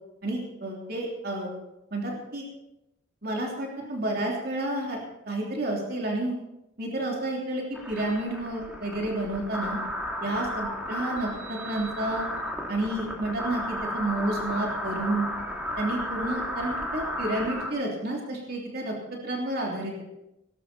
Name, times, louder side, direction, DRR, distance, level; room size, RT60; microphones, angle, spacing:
voice 1, 0.2-1.5 1.9-2.5 3.2-5.0 5.3-6.4 6.8-9.8 10.2-12.3 12.7-15.3 15.8-19.9, right 1 dB, 50° right, -1 dB, 3.2 m, -30 dB
sound 1, 7.7-17.7, equal, 5° right, 2.0 m, -34 dB
19.5 x 12.0 x 4.3 m, 0.88 s
head